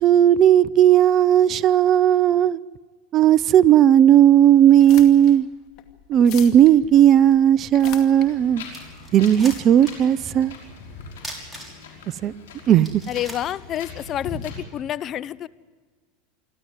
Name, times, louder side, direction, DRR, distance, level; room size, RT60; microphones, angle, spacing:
voice 1, 0.0-2.6 3.1-5.5 6.1-8.6 9.1-10.5 12.2-12.3 12.7-12.9, right 10 dB, 40° right, 19 dB, 0.7 m, -15 dB
sound 1, 4.6-11.1, left 12 dB, 55° left, 2.3 m, -43 dB
Wind, 8.2-14.6, left 4 dB, 80° left, 5.6 m, -41 dB
sound 2, 8.3-8.4 8.7-10.1 10.4-10.5 11.2-12.1 12.5-12.6 12.8-14.3, right 1 dB, 5° right, 6.0 m, -39 dB
voice 2, 13.1-15.5, left 11 dB, 40° left, 17 dB, 0.7 m, -29 dB
28.0 x 12.5 x 9.5 m, 1.5 s
hypercardioid pair, 100°, 0 cm